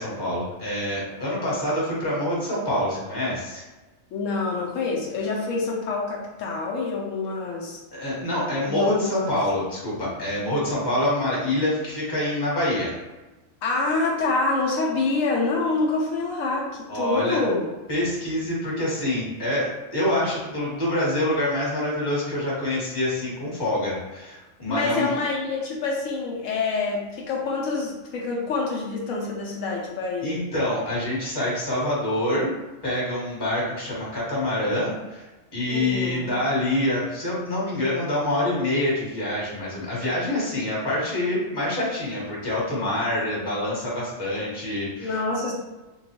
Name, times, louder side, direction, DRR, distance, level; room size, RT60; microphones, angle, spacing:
voice 1, 0.0-3.6 7.9-13.0 16.9-17.4 17.9-25.1 30.2-32.5 32.8-35.2 35.5-45.2, left 1 dB, 20° left, -6 dB, 1.0 m, -26 dB
voice 2, 4.1-7.8 8.6-9.4 13.6-17.7 24.7-30.5 35.7-36.3 45.0-45.5, left 3 dB, 80° left, -2 dB, 1.0 m, -26 dB
3.6 x 2.3 x 2.8 m, 1.1 s
omnidirectional pair, 1.4 m